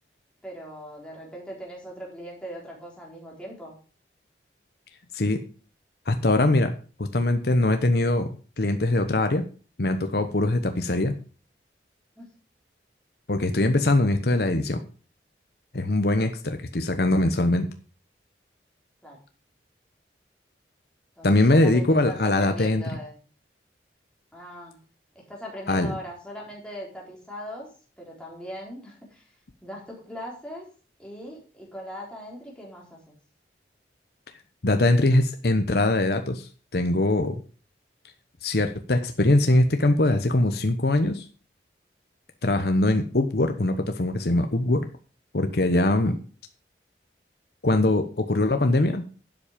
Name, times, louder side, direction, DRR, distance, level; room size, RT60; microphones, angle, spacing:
voice 1, 0.4-3.7 12.2-12.3 19.0-19.2 21.2-23.2 24.3-24.8 25.1-27.7 28.0-29.3 29.6-30.7 31.0-33.2 45.9-46.2, equal, 5° left, -4 dB, 4.2 m, -40 dB
voice 2, 6.1-6.7 7.0-8.3 8.6-9.4 9.8-11.1 13.3-14.8 15.7-17.7 21.2-22.8 25.7-25.9 34.6-37.3 38.4-41.2 42.4-44.9 45.3-46.2 47.6-49.0, left 2 dB, 60° left, 7 dB, 1.0 m, -22 dB
12.0 x 7.5 x 5.1 m, 0.38 s
head